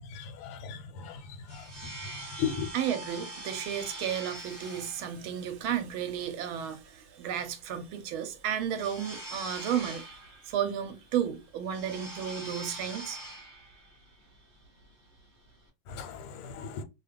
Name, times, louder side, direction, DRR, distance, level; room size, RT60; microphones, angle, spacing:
voice 1, 0.1-1.2 1.5-1.6 2.4-2.7 15.9-16.8, left 7 dB, 90° left, 1.6 m, -36 dB
sound 1, 1.1-15.7, right 1 dB, 20° right, 0.8 m, -44 dB
voice 2, 2.7-13.2, right 9 dB, 75° right, 1.4 m, -33 dB
3.4 x 2.3 x 3.2 m
omnidirectional pair, 2.4 m